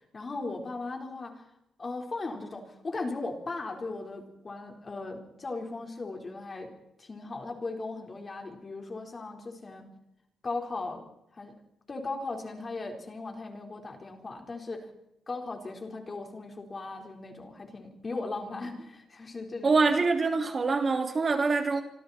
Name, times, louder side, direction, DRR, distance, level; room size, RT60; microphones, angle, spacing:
voice 1, 0.1-1.4 1.8-6.7 7.0-9.8 10.4-11.0 11.3-11.6 11.9-14.9 15.3-19.8, left 3 dB, 30° left, 4.3 m, -37 dB
voice 2, 19.6-21.8, right 4 dB, 35° right, 3.0 m, -25 dB
26.0 x 26.0 x 4.4 m
cardioid pair, 130°, 0 cm